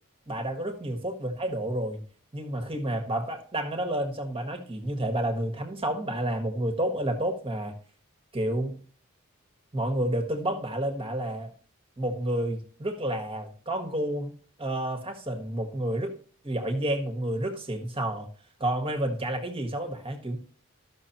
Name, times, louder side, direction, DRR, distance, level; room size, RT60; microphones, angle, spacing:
voice 1, 0.3-2.0 2.3-7.7 8.3-8.8 9.7-11.5 12.0-14.3 14.6-16.1 16.4-18.3 18.6-20.4, right 1 dB, 25° right, 5 dB, 1.5 m, -30 dB
13.5 x 6.3 x 2.9 m, 0.43 s
head